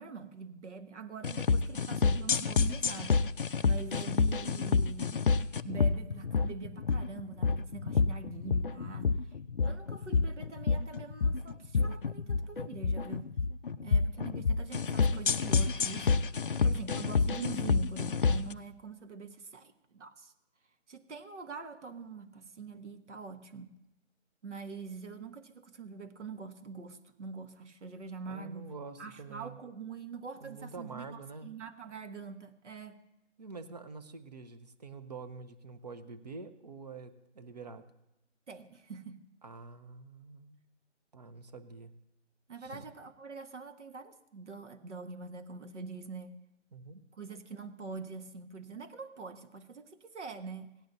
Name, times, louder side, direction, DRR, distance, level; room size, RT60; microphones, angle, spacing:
voice 1, 0.0-3.3 3.7-5.2 5.7-9.2 9.6-13.3 13.8-16.2 16.5-20.3 20.9-23.7 24.4-28.7 29.0-33.0 38.5-39.2 42.5-46.3 47.1-50.7, right 4 dB, 70° right, 8 dB, 1.4 m, -44 dB
sound 1, 1.2-18.5, left 4 dB, 45° left, 0.4 m, -28 dB
voice 2, 28.3-29.6 30.4-31.5 33.4-37.9 39.4-40.6 41.1-41.9 42.6-42.9 46.7-47.0, right 4 dB, 35° right, 11 dB, 0.7 m, -46 dB
17.5 x 10.5 x 2.7 m, 0.87 s
figure-of-eight pair, 160°, 37 cm